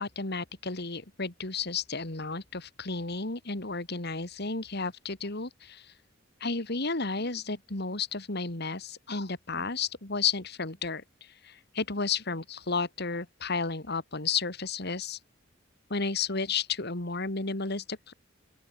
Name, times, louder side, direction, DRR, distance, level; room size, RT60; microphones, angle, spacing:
voice 1, 0.0-5.9 6.4-15.2 15.9-18.1, left 4 dB, 55° left, 2.6 m, -32 dB
open air
head